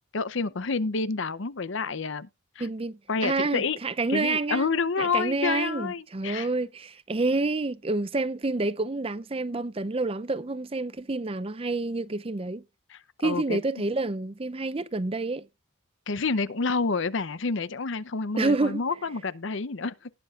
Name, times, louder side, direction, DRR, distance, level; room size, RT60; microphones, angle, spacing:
voice 1, 0.1-2.3 2.6-2.7 3.1-3.8 4.1-6.5 12.9-13.6 16.1-20.1, left 4 dB, 60° left, 0.7 m, -29 dB
voice 2, 2.6-4.7 5.0-12.6 13.2-15.5 18.4-18.8, right 3 dB, 25° right, 0.5 m, -28 dB
18.5 x 6.9 x 2.4 m
head